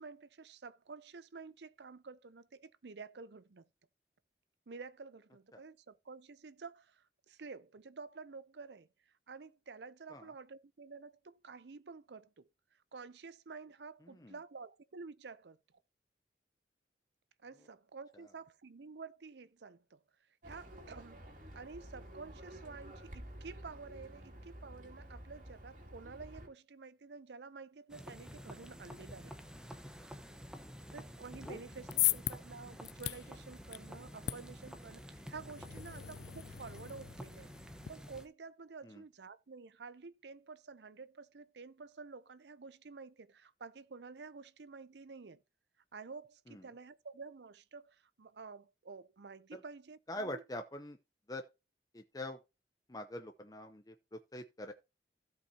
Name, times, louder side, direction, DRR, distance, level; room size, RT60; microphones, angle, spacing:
voice 1, 0.0-3.6 4.7-12.5 12.9-15.6 17.4-20.0 20.4-21.2 21.5-29.3 30.9-45.4 45.9-50.4, right 4 dB, 75° right, 0.6 m, -50 dB
voice 2, 14.0-14.3 18.1-18.2 30.8-30.9 31.4-31.6 38.8-39.0 46.5-46.6 49.5-49.6 50.1-51.0 51.3-51.5 51.9-52.4 52.9-54.7, left 1 dB, 20° left, 0.7 m, -44 dB
Livestock farm animals working animals, 20.4-26.5, right 1 dB, 45° right, 2.5 m, -51 dB
sound 1, 27.9-38.3, equal, 5° right, 1.0 m, -50 dB
sound 2, 31.6-37.9, left 15 dB, 70° left, 0.4 m, -39 dB
16.5 x 5.5 x 2.8 m
head